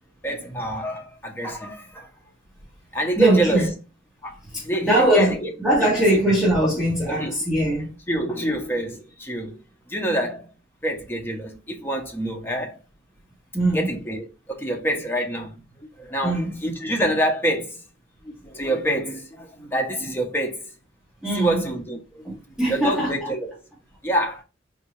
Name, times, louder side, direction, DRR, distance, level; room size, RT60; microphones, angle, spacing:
voice 1, 0.2-2.1 2.9-3.7 4.2-4.4 4.6-5.5 6.7-6.8 7.1-7.4 8.1-9.6 9.9-10.5 10.8-12.8 13.7-15.5 16.0-17.8 18.2-20.6 21.3-22.3 22.7-23.5 24.0-24.4, right 1 dB, 10° left, 0.7 m, -26 dB
voice 2, 3.2-3.7 4.5-7.9 13.5-13.9 16.2-16.6 21.2-21.6 22.2-23.3, right 1 dB, 5° right, 1.3 m, -21 dB
3.8 x 2.7 x 3.1 m
head